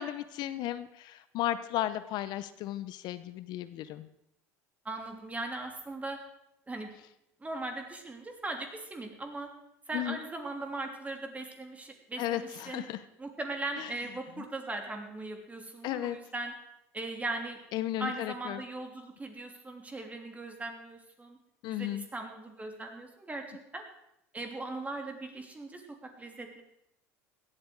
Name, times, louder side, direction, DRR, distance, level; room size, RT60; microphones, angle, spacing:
voice 1, 0.0-4.1 9.9-10.2 12.2-13.0 13.8-13.9 14.4-14.5 15.8-16.2 17.7-18.6 21.6-22.0, left 13 dB, 60° left, 13 dB, 0.7 m, -34 dB
voice 2, 4.8-6.2 6.7-6.9 7.4-9.5 9.9-12.8 13.2-16.5 16.9-17.6 18.0-21.4 21.7-23.4 23.7-23.8 24.3-26.6, right 2 dB, 15° right, 3 dB, 3.2 m, -39 dB
16.5 x 12.0 x 4.7 m, 0.82 s
hypercardioid pair, 80°, 8 cm